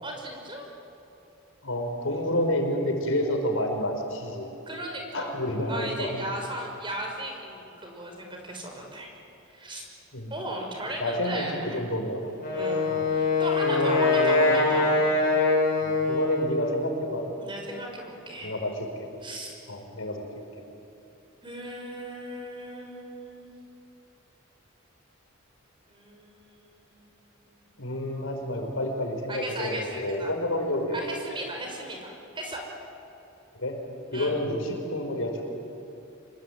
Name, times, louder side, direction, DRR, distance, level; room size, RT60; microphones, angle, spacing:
voice 1, 0.0-0.7 4.7-5.4 5.7-9.1 9.5-9.8 10.3-11.8 12.5-15.3 17.4-18.5 19.2-19.5 21.4-23.5 25.9-26.8 29.3-30.3 30.9-32.6 34.1-34.3, right 1 dB, 25° right, 1 dB, 5.6 m, -36 dB
voice 2, 1.6-4.5 5.1-6.2 10.1-10.3 11.0-11.5 11.7-12.2 12.9-13.1 13.6-14.7 15.8-17.2 18.4-19.1 19.7-20.2 20.5-20.6 27.8-31.2 33.6-33.8 34.1-35.4, left 1 dB, 75° left, 3 dB, 5.2 m, -29 dB
Wind instrument woodwind instrument, 12.4-16.6, left 3 dB, 40° left, 7.3 m, -23 dB
27.0 x 23.0 x 9.5 m, 2.9 s
head